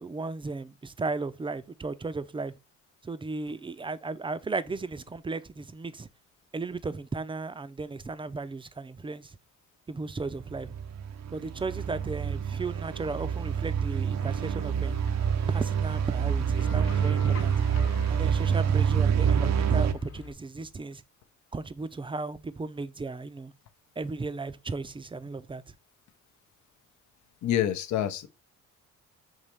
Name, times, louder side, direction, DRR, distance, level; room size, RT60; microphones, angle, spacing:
voice 1, 0.0-2.5 3.0-6.1 6.5-9.4 9.9-10.7 11.3-14.9 15.5-17.5 18.1-21.0 21.5-23.5 24.0-25.6, right 3 dB, 15° right, 0.5 m, -35 dB
sound 1, 10.3-19.9, right 7 dB, 60° right, 0.6 m, -27 dB
sound 2, 14.2-20.3, left 6 dB, 50° left, 1.0 m, -45 dB
voice 2, 27.4-28.3, left 11 dB, 70° left, 0.7 m, -27 dB
5.6 x 2.9 x 3.2 m
cardioid pair, 85°, 30 cm